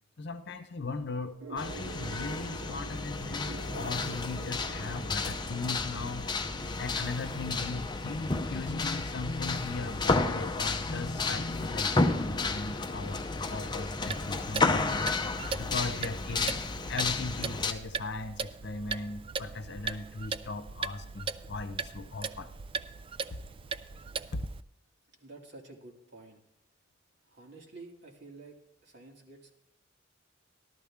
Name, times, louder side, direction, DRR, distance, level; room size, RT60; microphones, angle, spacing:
voice 1, 0.2-6.3 6.8-13.2 13.5-15.1 15.6-16.6 16.9-22.5 24.3-24.4, left 3 dB, 60° left, 9 dB, 0.7 m, -38 dB
sound 1, 1.4-6.4, right 4 dB, 90° right, 0.7 m, -46 dB
sound 2, 1.6-17.7, left 3 dB, 25° left, 0.6 m, -32 dB
Clock, 14.0-24.6, right 5 dB, 30° right, 0.3 m, -39 dB
voice 2, 25.2-26.4 27.3-29.5, right 3 dB, 60° right, -1 dB, 2.2 m, -50 dB
14.0 x 12.5 x 3.6 m, 0.80 s
head